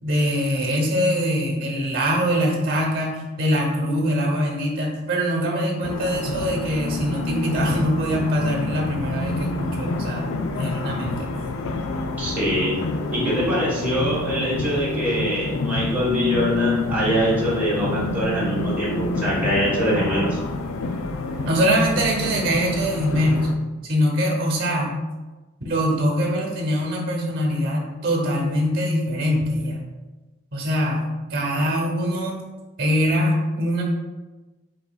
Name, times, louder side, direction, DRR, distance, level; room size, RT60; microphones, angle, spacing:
voice 1, 0.0-11.3 21.5-23.5 23.8-25.0 25.6-29.8 30.5-32.4 32.8-33.8, equal, 50° right, 0 dB, 1.0 m, -23 dB
sound 1, 5.8-23.5, left 3 dB, 90° left, 0.4 m, -28 dB
voice 2, 12.2-12.7 13.1-20.4, equal, 10° right, -9 dB, 1.4 m, -23 dB
5.1 x 3.8 x 2.3 m, 1.2 s
head